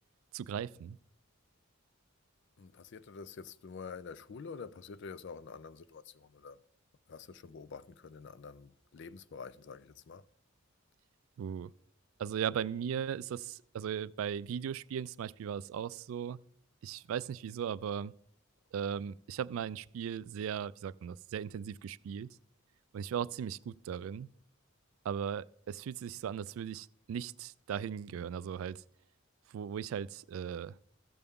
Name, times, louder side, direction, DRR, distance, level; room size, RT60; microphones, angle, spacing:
voice 1, 0.3-1.0 11.4-11.7 12.2-16.4 16.8-18.1 18.7-22.4 22.9-24.3 25.0-28.8 29.5-30.8, right 8 dB, 80° right, 0.3 m, -37 dB
voice 2, 2.6-6.6 7.1-10.2, left 5 dB, 60° left, 0.4 m, -47 dB
15.0 x 6.8 x 3.6 m
head